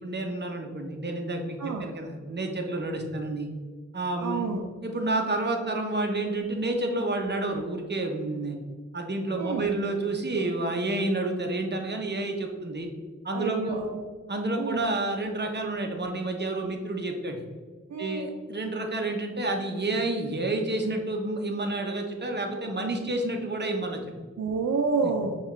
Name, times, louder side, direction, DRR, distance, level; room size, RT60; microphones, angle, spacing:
voice 1, 0.0-3.5 3.9-4.5 4.8-8.6 8.9-12.9 13.2-13.9 14.3-17.4 18.0-24.0, right 2 dB, 35° right, 3 dB, 0.7 m, -29 dB
voice 2, 1.6-1.9 4.2-4.7 9.3-9.7 13.3-14.0 14.5-14.8 17.9-18.3 24.4-25.4, right 4 dB, 70° right, 3 dB, 0.4 m, -29 dB
5.4 x 2.4 x 3.1 m, 1.5 s
wide cardioid pair, 45°, 29 cm